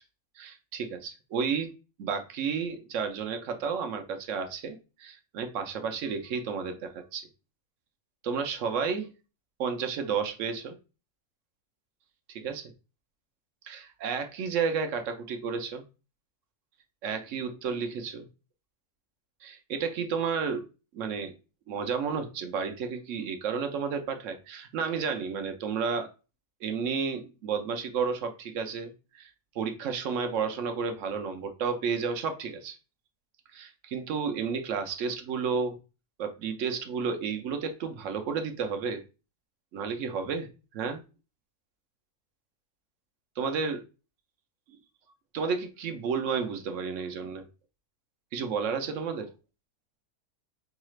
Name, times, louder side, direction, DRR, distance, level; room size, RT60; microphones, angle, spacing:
voice 1, 0.4-1.7 2.0-7.3 8.2-9.1 9.6-10.8 12.3-12.7 13.6-15.8 17.0-18.3 19.4-20.7 20.9-21.3 21.7-26.1 26.6-32.8 33.5-35.8 36.2-39.0 39.7-41.0 43.4-43.8 45.3-47.5 48.3-49.3, right 6 dB, 65° right, 0.9 m, -32 dB
4.7 x 2.4 x 3.0 m
omnidirectional pair, 1.5 m